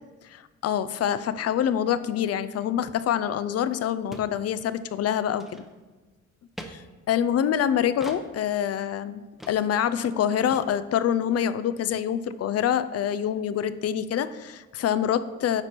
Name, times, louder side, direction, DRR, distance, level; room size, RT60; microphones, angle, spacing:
voice 1, 0.2-5.6 6.7-9.2 9.5-15.6, left 9 dB, 55° left, 14 dB, 0.5 m, -26 dB
sound 1, 3.4-3.5 3.7-3.8 4.1-4.3 4.7-4.9 5.3-5.9 6.6-6.7 8.0-8.2 8.8-8.9 9.4-9.6 9.9-10.0 10.1-10.2 10.5-10.7, equal, ahead, 0.8 m, -42 dB
9.6 x 4.3 x 4.5 m, 1.2 s
cardioid pair, 90°, 30 cm